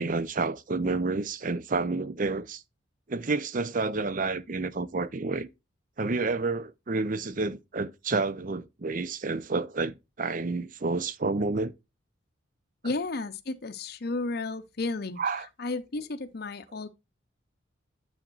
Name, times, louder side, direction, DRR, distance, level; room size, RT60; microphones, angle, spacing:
voice 1, 0.0-2.6 3.1-5.5 6.0-11.7 15.2-15.5, right 3 dB, 40° right, 0.6 m, -29 dB
voice 2, 12.8-15.2 15.6-16.9, left 3 dB, 50° left, 0.6 m, -33 dB
8.9 x 7.2 x 2.4 m
head